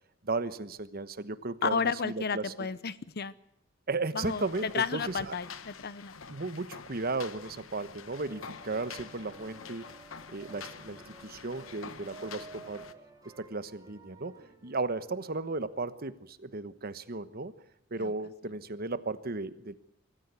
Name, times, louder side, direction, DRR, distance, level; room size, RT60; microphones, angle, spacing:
voice 1, 0.2-2.5 3.9-5.4 6.3-9.9 10.3-12.8 13.4-17.5 17.9-19.7, right 3 dB, 50° right, 13 dB, 1.2 m, -35 dB
voice 2, 1.6-3.3 4.1-6.3 18.0-18.1, left 5 dB, 55° left, 17 dB, 0.9 m, -32 dB
sound 1, 4.2-12.9, left 6 dB, 90° left, 1.1 m, -47 dB
sound 2, 8.1-15.7, right 3 dB, 20° right, 3.5 m, -53 dB
24.0 x 14.5 x 9.5 m, 0.77 s
head